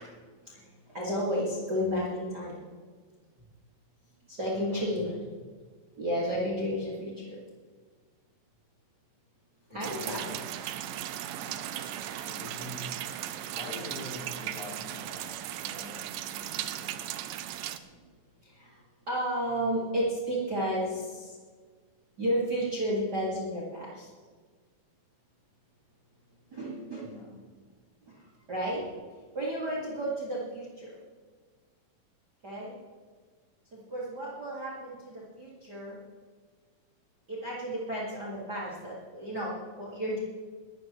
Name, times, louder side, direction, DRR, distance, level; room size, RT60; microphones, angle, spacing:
voice 1, 0.5-2.6 4.3-5.1 6.0-7.4 9.7-10.4 11.7-12.3 17.9-18.0 18.4-18.8 19.1-21.3 22.2-24.1 26.5-27.1 28.1-28.2 28.5-28.8 29.3-30.9 32.4-32.7 33.7-36.0 37.3-40.2, equal, 30° right, 2.3 m, -32 dB
voice 2, 4.4-5.3 9.7-10.5 11.3-13.0 13.5-17.1 27.0-27.5, left 1 dB, 15° left, 3.1 m, -45 dB
sound 1, 9.8-17.8, right 12 dB, 80° right, 2.2 m, -37 dB
21.0 x 13.0 x 3.2 m
omnidirectional pair, 4.2 m